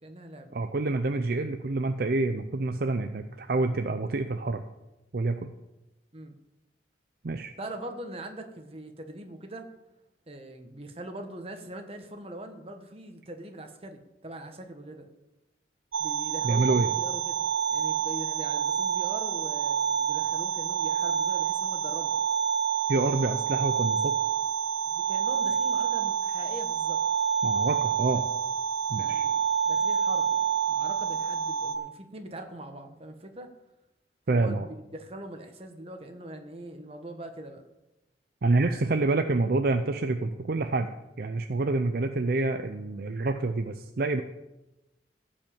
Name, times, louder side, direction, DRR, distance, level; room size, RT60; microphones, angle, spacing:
voice 1, 0.0-0.6 6.1-6.4 7.6-9.7 10.3-15.1 16.0-22.1 24.9-27.0 28.9-29.4 29.6-33.5 34.3-37.6, right 1 dB, 30° right, 6 dB, 1.2 m, -42 dB
voice 2, 0.5-4.6 5.1-5.4 7.2-7.5 16.4-16.9 22.9-24.2 27.4-28.3 28.9-29.3 34.3-34.7 38.4-40.9 41.2-44.2, right 3 dB, 55° right, 7 dB, 0.5 m, -27 dB
sound 1, 15.9-31.8, right 7 dB, 90° right, 0.7 m, -28 dB
15.0 x 5.4 x 7.2 m, 0.99 s
head